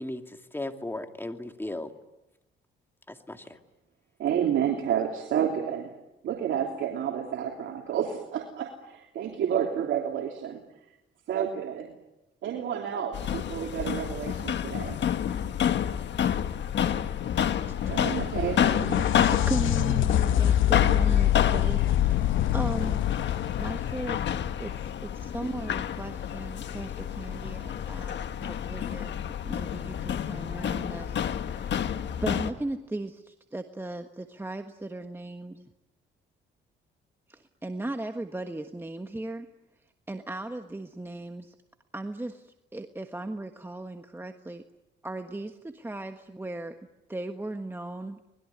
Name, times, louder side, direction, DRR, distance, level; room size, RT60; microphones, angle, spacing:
voice 1, 0.0-1.9 3.1-3.6, left 1 dB, 10° left, 6 dB, 2.5 m, -36 dB
voice 2, 4.2-5.9 6.2-10.6 11.3-11.9 12.4-15.0 17.9-19.1, right 9 dB, 75° right, 1 dB, 3.1 m, -30 dB
sound 1, 13.1-32.5, left 9 dB, 65° left, 1.5 m, -29 dB
sound 2, 17.6-25.2 28.6-28.7 29.8-29.9, left 12 dB, 85° left, 0.9 m, -26 dB
voice 3, 19.3-23.1 23.6-24.2 24.6-29.1 29.5-31.8 32.2-35.7 37.3-39.5 40.1-41.5 41.9-44.6 45.0-46.8 47.1-48.2, right 2 dB, 10° right, 6 dB, 1.4 m, -37 dB
25.5 x 21.0 x 9.6 m, 0.95 s
cardioid pair, 90°, 20 cm